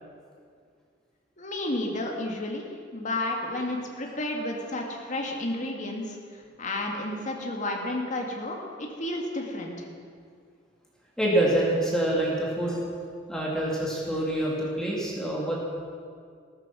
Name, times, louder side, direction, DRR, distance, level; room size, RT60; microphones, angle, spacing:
voice 1, 1.4-2.6 2.9-6.2 6.6-9.9, left 1 dB, 40° left, 0 dB, 2.2 m, -31 dB
voice 2, 11.2-12.8 13.3-15.6, right 1 dB, 5° left, -5 dB, 2.9 m, -26 dB
15.0 x 13.5 x 6.2 m, 2.1 s
head